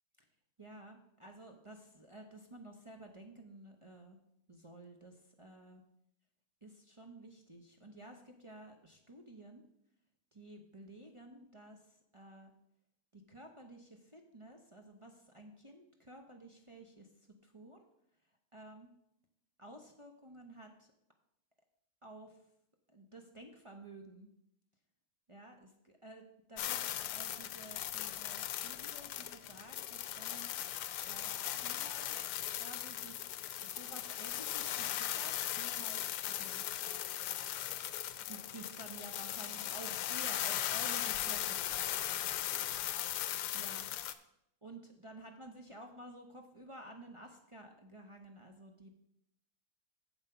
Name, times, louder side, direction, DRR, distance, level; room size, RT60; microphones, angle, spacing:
voice 1, 0.6-4.2 4.5-5.8 6.6-9.6 10.3-12.5 13.1-17.1 17.4-17.9 18.5-18.9 19.6-20.9 22.0-22.4 22.9-24.3 25.3-26.2 26.5-30.5 31.0-32.1 32.6-36.6 38.3-41.8 43.5-43.9 44.6-48.9, right 1 dB, 30° right, 2 dB, 0.6 m, -53 dB
sound 1, 26.6-44.1, left 12 dB, 80° left, 1.2 m, -38 dB
7.5 x 7.2 x 5.6 m, 0.78 s
omnidirectional pair, 1.8 m